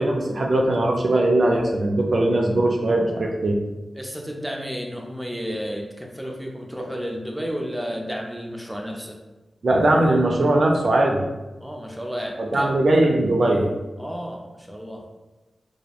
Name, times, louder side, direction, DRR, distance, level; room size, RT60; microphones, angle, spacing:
voice 1, 0.0-3.6 9.6-11.2 12.4-13.7, right 1 dB, 65° right, 0 dB, 0.3 m, -20 dB
voice 2, 4.0-9.2 11.6-12.8 14.0-15.0, equal, 5° right, 0 dB, 0.4 m, -32 dB
2.6 x 2.0 x 2.3 m, 1.1 s
cardioid pair, 55°, 0 cm